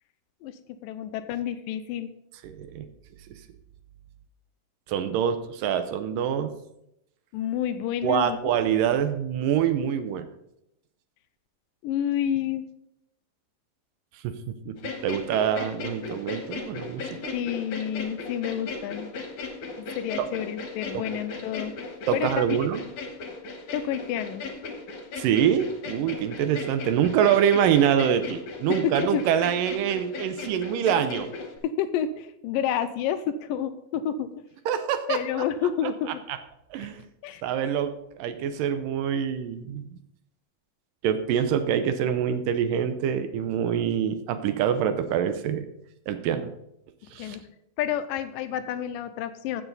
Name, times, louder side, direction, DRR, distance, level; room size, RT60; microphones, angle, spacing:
voice 1, 0.8-2.1 7.3-8.4 11.8-12.7 17.3-19.1 19.8-22.6 23.7-24.5 28.8-29.2 31.6-34.5 35.1-36.2 37.2-37.4 47.2-47.4 47.8-49.6, left 9 dB, 80° left, 10 dB, 2.2 m, -29 dB
voice 2, 2.4-2.9 4.9-6.5 8.0-10.3 14.2-14.8 15.0-17.3 20.9-21.0 22.1-22.8 25.2-31.3 34.7-35.4 36.3-36.4 36.7-37.0 37.4-37.9 38.2-40.0 41.0-45.7 46.1-46.5 47.1-47.4, right 9 dB, 75° right, 10 dB, 2.2 m, -25 dB
sound 1, 14.8-31.6, left 4 dB, 65° left, 2.5 m, -37 dB
14.5 x 7.0 x 4.0 m, 0.81 s
omnidirectional pair, 4.2 m